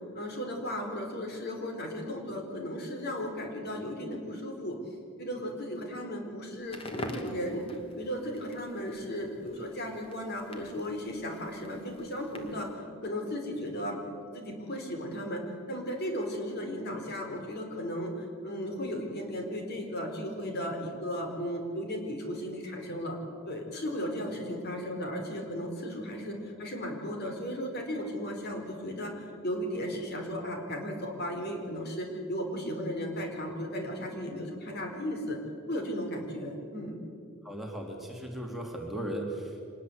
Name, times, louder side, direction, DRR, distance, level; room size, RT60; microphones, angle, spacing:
voice 1, 0.1-4.8 5.2-7.6 8.0-12.7 13.0-14.0 14.3-15.4 15.7-23.2 23.5-35.4 35.7-37.0, equal, 55° left, 3 dB, 4.6 m, -35 dB
Crackle, 6.6-12.8, left 1 dB, 30° left, 2.3 m, -46 dB
voice 2, 37.4-39.6, right 1 dB, ahead, 0 dB, 3.1 m, -37 dB
25.0 x 20.5 x 8.2 m, 2.3 s
head